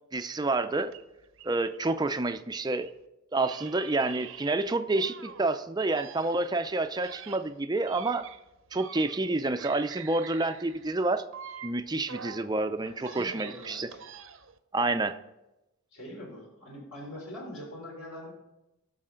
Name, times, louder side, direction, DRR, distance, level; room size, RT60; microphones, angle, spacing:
voice 1, 0.1-0.9 1.4-2.9 3.3-8.3 8.7-11.2 11.6-13.9 14.7-15.2, right 2 dB, 20° right, 0.4 m, -28 dB
sound 1, 0.9-3.0 3.4-5.6 5.9-9.3 9.6-12.5 12.9-14.6, right 7 dB, 60° right, 0.7 m, -46 dB
voice 2, 12.8-14.0 15.9-18.3, left 1 dB, 65° left, 3.4 m, -43 dB
18.5 x 6.4 x 3.8 m
head